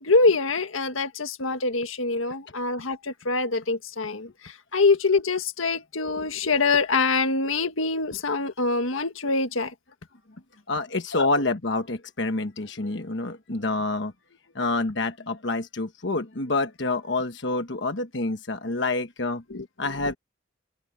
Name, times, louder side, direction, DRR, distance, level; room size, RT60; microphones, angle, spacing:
voice 1, 0.0-9.7 11.1-11.3 19.5-19.7 20.0-20.1, left 3 dB, 90° left, 1.7 m, -24 dB
voice 2, 10.7-14.1 14.5-19.4 19.8-20.2, left 2 dB, 60° left, 1.2 m, -27 dB
open air
head